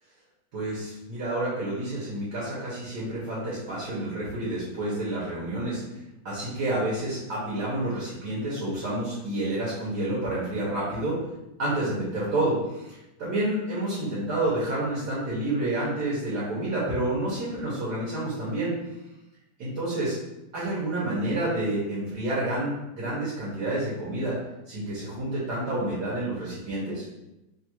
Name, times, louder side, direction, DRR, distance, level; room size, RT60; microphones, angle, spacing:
voice 1, 0.5-5.8 6.2-11.2 11.6-18.8 19.6-20.2 20.5-24.3 24.7-27.0, right 1 dB, 65° right, -7 dB, 1.5 m, -29 dB
3.3 x 2.4 x 4.4 m, 0.94 s
omnidirectional pair, 2.0 m